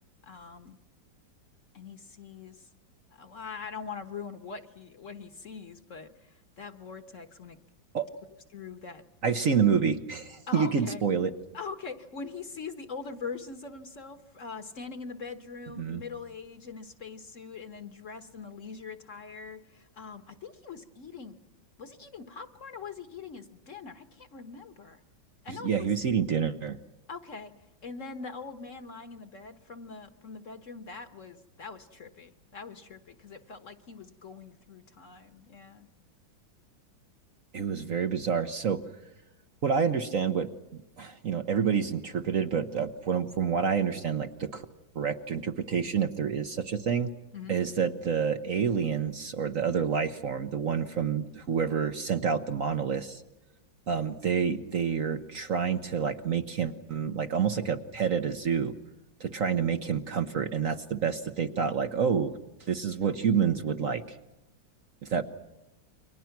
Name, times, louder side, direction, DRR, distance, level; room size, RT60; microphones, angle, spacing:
voice 1, 0.2-0.8 1.7-2.7 3.1-7.6 8.5-9.0 10.5-11.0 11.5-21.4 21.8-25.0 25.4-25.9 27.1-27.5 27.8-35.9 47.3-47.6, left 5 dB, 45° left, 10 dB, 1.5 m, -42 dB
voice 2, 9.2-11.3 15.8-16.0 25.6-26.8 37.5-38.8 39.6-40.5 41.0-44.6 44.9-47.1 47.5-53.2 53.9-58.7 59.2-62.3 62.7-64.2 65.0-65.2, right 6 dB, 50° right, 8 dB, 1.3 m, -28 dB
29.5 x 23.5 x 6.0 m, 0.90 s
omnidirectional pair, 2.0 m